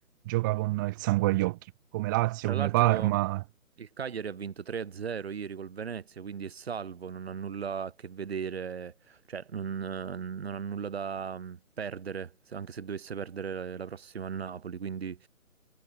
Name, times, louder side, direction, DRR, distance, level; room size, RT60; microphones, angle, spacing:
voice 1, 0.2-1.6 1.9-3.4, right 20 dB, 15° right, 1.5 m, -26 dB
voice 2, 2.4-3.2 3.8-15.3, right 7 dB, 50° right, 7.3 m, -37 dB
figure-of-eight pair, 155°, 41 cm